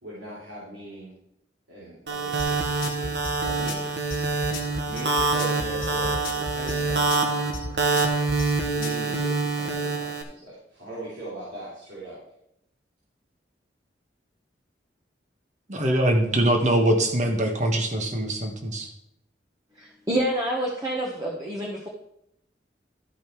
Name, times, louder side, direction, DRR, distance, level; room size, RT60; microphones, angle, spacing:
voice 1, 0.0-1.1 1.7-3.9 4.9-8.0 8.8-12.2, right 1 dB, 85° right, -8 dB, 3.3 m, -40 dB
sound 1, 2.1-10.2, right 3 dB, 65° right, 1.2 m, -26 dB
sound 2, 2.4-9.0, left 2 dB, 50° left, 1.5 m, -34 dB
voice 2, 15.7-18.9, right 1 dB, 40° right, 3 dB, 1.4 m, -23 dB
voice 3, 19.8-21.9, right 1 dB, 20° right, -2 dB, 1.2 m, -27 dB
13.0 x 5.3 x 4.6 m, 0.77 s
head